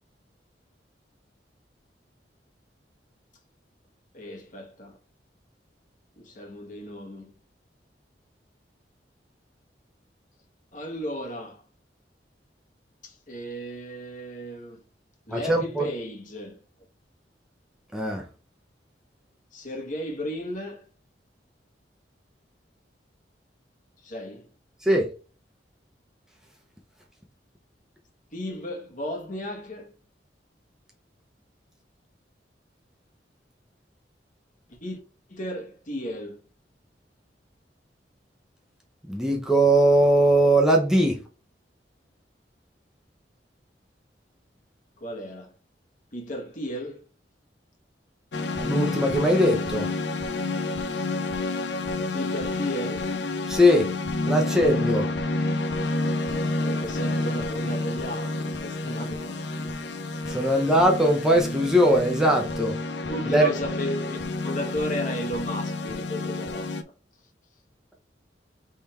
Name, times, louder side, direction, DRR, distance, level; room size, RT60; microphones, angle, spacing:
voice 1, 4.1-5.0 6.2-7.3 10.7-11.6 13.0-14.8 15.3-16.6 19.5-20.9 24.0-24.5 28.3-29.9 34.7-35.0 35.3-36.4 45.0-45.5 46.1-47.0 52.1-53.1 56.1-59.7 63.1-66.8, equal, 50° left, 1.4 m, -35 dB
voice 2, 15.3-15.9 17.9-18.2 24.8-25.1 39.1-41.2 48.6-49.9 53.5-53.9 54.3-55.1 60.3-62.7 63.3-63.5, right 1 dB, 5° right, 0.7 m, -20 dB
sound 1, 48.3-66.8, left 2 dB, 80° left, 0.7 m, -29 dB
3.6 x 3.4 x 4.3 m
head